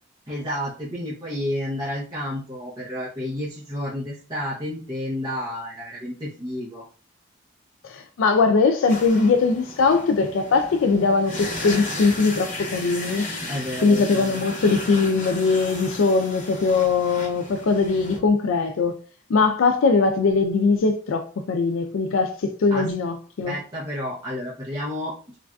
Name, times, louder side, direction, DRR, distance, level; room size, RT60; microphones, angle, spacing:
voice 1, 0.3-6.8 13.4-14.4 22.7-22.9 23.4-25.4, left 1 dB, 20° right, 0.7 m, -31 dB
voice 2, 7.8-13.3 13.8-18.9 19.3-23.6, left 4 dB, 85° left, 0.4 m, -21 dB
sound 1, 8.9-18.2, left 1 dB, 40° left, 0.9 m, -35 dB
3.1 x 2.5 x 2.3 m
head